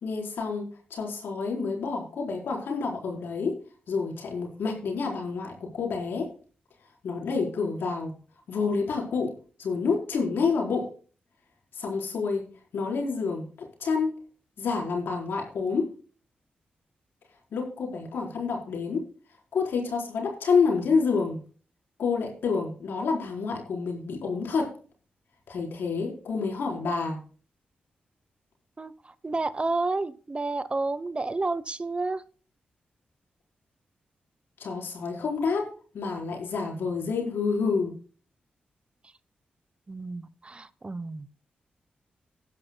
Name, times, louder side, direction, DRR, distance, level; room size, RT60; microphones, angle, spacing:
voice 1, 0.0-3.6 3.9-6.3 7.0-8.1 8.5-10.9 11.7-12.4 12.7-13.5 13.8-14.1 14.6-15.9 17.5-19.1 19.5-21.4 22.0-24.7 25.5-27.2 34.6-35.7 35.9-37.9, left 5 dB, 80° left, 1 dB, 4.2 m, -28 dB
voice 2, 29.2-32.2 39.9-41.3, right 3 dB, 30° right, 16 dB, 0.8 m, -30 dB
16.5 x 11.0 x 2.2 m, 0.39 s
cardioid pair, 55°, 4 cm